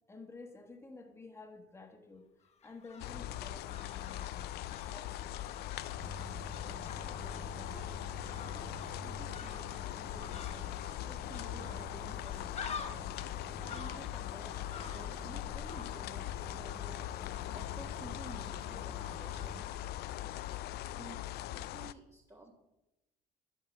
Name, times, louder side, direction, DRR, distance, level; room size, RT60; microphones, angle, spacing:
voice 1, 0.1-2.3 2.6-4.6 4.8-5.3, left 3 dB, 15° left, 3 dB, 1.4 m, -51 dB
sound 1, 2.4-20.6 20.8-20.9, left 5 dB, 40° left, 1.2 m, -51 dB
sound 2, 3.0-21.9, left 14 dB, 70° left, 0.4 m, -41 dB
sound 3, 5.9-19.6, right 1 dB, 70° right, 3.2 m, -50 dB
voice 2, 6.3-10.7 11.1-20.3 20.9-22.5, right 2 dB, 20° right, 0 dB, 1.5 m, -53 dB
11.5 x 4.6 x 7.3 m, 0.96 s
cardioid pair, 110°, 17 cm